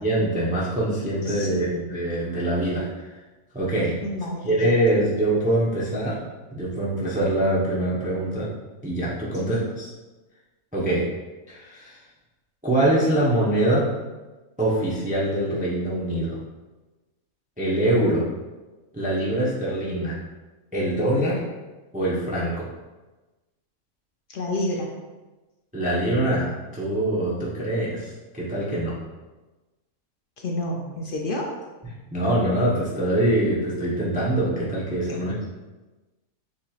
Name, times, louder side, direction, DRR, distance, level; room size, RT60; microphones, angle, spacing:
voice 1, 0.0-3.1 3.5-3.9 4.4-6.2 6.5-8.5 8.8-9.9 10.7-11.1 11.5-12.0 12.6-13.9 14.6-16.4 17.6-18.2 18.9-20.2 20.7-21.4 21.9-22.7 25.7-28.9 32.1-35.4, right 1 dB, 10° right, -6 dB, 0.6 m, -24 dB
voice 2, 1.3-1.9 4.0-4.6 9.5-9.7 24.3-24.9 30.4-31.5 35.1-35.5, left 1 dB, 60° left, 0 dB, 0.5 m, -30 dB
7.1 x 3.0 x 2.4 m, 1.2 s
omnidirectional pair, 1.5 m